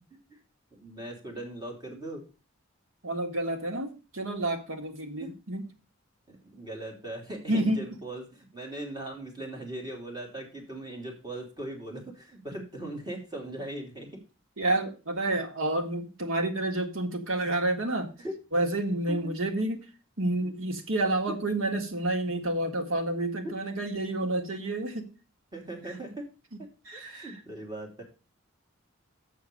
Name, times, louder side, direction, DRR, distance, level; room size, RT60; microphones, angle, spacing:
voice 1, 0.7-2.2 5.2-5.3 6.3-14.2 18.2-18.3 19.1-19.2 21.3-21.4 23.4-23.5 25.5-26.2 26.6-28.0, right 1 dB, 20° right, 0 dB, 3.0 m, -39 dB
voice 2, 3.0-5.6 7.5-7.8 14.6-18.1 18.5-19.9 20.2-25.1 26.9-27.3, right 1 dB, 85° right, 5 dB, 1.7 m, -29 dB
6.9 x 6.3 x 6.7 m, 0.33 s
head